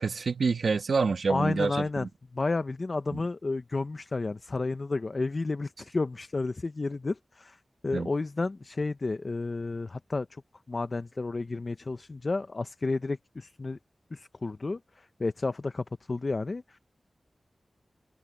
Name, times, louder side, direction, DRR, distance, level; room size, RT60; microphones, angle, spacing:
voice 1, 0.0-2.1 3.1-3.2 7.9-8.1, right 4 dB, 85° right, 1.9 m, -27 dB
voice 2, 1.3-2.1 2.3-10.4 10.7-13.8 14.1-16.8, left 3 dB, 50° left, 0.7 m, -31 dB
wide cardioid pair, 80°, 0 cm